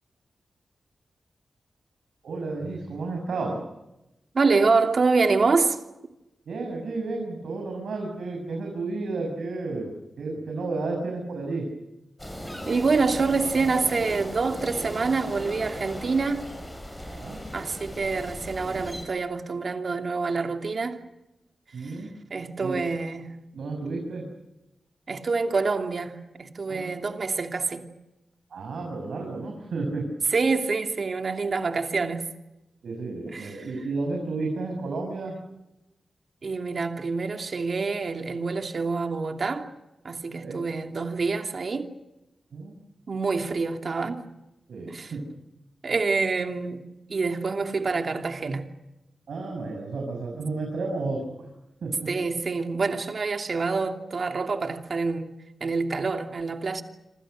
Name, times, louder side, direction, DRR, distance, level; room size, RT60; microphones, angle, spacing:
voice 1, 2.2-3.6 6.5-11.7 17.1-17.4 21.7-22.1 22.6-22.8 23.5-24.3 26.7-27.0 28.5-30.1 32.8-35.4 40.3-40.6 42.5-42.7 44.7-45.3 49.3-51.5 51.8-52.1, right 3 dB, 85° right, 6.4 m, -32 dB
voice 2, 4.3-5.8 12.7-16.5 17.5-21.0 22.3-23.4 25.1-27.9 30.3-32.3 33.2-33.7 36.4-39.7 40.0-41.9 43.1-44.2 44.9-45.1 45.8-48.7 52.1-55.3 55.6-56.8, right 4 dB, 50° right, 2.8 m, -26 dB
sound 1, 12.2-19.1, equal, 10° left, 7.9 m, -37 dB
27.5 x 26.5 x 6.6 m
wide cardioid pair, 125°, 0 cm